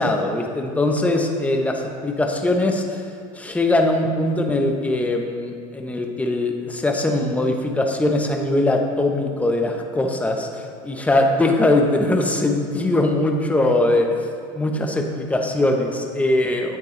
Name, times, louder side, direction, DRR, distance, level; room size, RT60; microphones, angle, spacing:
voice 1, 0.0-3.0 3.4-14.1 14.6-16.8, left 2 dB, 10° left, 3 dB, 0.9 m, -21 dB
10.5 x 8.3 x 3.3 m, 2.4 s
supercardioid pair, 115°, 17 cm